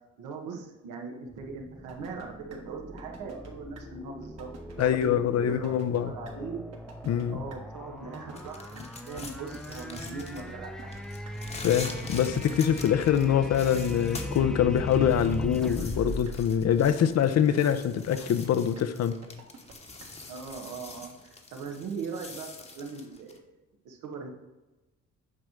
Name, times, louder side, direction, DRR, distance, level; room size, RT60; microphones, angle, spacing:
voice 1, 0.2-6.7 7.3-10.9 20.3-22.5 22.7-23.5 23.8-24.3, right 4 dB, 85° right, 1.3 m, -40 dB
sound 1, 1.3-17.5, left 1 dB, ahead, 0.4 m, -39 dB
sound 2, 1.9-2.3 2.5-2.6 3.0-3.5 3.7-3.8 4.2-4.8 5.0-5.1 5.5-6.0 6.2-6.3 6.7-7.2 7.5-7.6 8.0-8.5 8.8-8.9 9.2-9.7 10.0-10.1 10.5-11.3 11.7-12.6 13.0-13.5 13.7-13.8 14.2-14.7 15.0-15.1 15.5-16.0 16.2-16.3 16.7-17.2 17.5-17.6 18.0-18.5 18.7-18.8 19.2-19.7 20.0-20.1 20.5-20.6, right 5 dB, 60° right, 1.6 m, -49 dB
voice 2, 4.8-6.1 7.1-7.4 11.6-19.1, left 9 dB, 60° left, 0.6 m, -24 dB
sound 3, 8.3-10.6 10.9-14.4 14.8-23.4, left 3 dB, 20° left, 1.0 m, -44 dB
8.2 x 3.1 x 6.4 m
cardioid pair, 90°, 30 cm